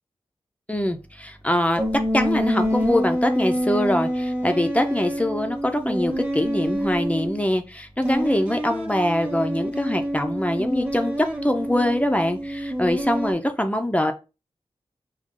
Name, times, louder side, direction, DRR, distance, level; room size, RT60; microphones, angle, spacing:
voice 1, 0.7-14.1, left 1 dB, 15° left, 5 dB, 0.5 m, -23 dB
sound 1, 1.8-7.4 8.0-13.3, equal, 10° right, 1.0 m, -27 dB
4.8 x 2.4 x 3.7 m, 0.29 s
wide cardioid pair, 70°, 11 cm